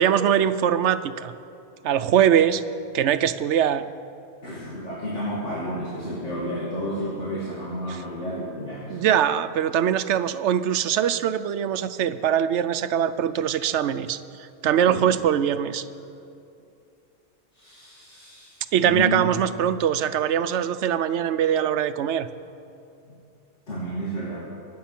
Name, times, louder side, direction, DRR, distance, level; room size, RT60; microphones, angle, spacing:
voice 1, 0.0-1.3 1.8-2.6 2.9-3.8 7.9-8.0 8.9-15.9 18.7-22.3, right 9 dB, 75° right, 13 dB, 0.9 m, -22 dB
voice 2, 4.4-9.0 14.9-15.1 17.5-19.2 23.7-24.4, equal, 80° left, -7 dB, 2.9 m, -31 dB
23.5 x 8.6 x 5.8 m, 2.6 s
omnidirectional pair, 1.2 m